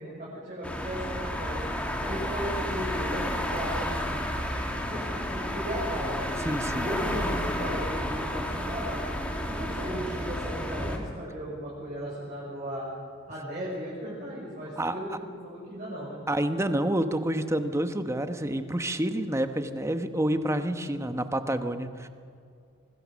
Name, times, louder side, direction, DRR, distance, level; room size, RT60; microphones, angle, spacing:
voice 1, 0.0-1.6 2.0-4.2 4.6-6.3 6.7-9.0 9.5-12.9 13.3-16.2 20.9-21.0, right 1 dB, 40° right, -7 dB, 6.2 m, -36 dB
sound 1, 0.6-11.0, equal, 5° left, 2.5 m, -31 dB
voice 2, 6.4-6.9 14.8-15.2 16.3-22.1, right 1 dB, 15° right, 8 dB, 1.1 m, -28 dB
24.5 x 20.0 x 6.4 m, 2.3 s
head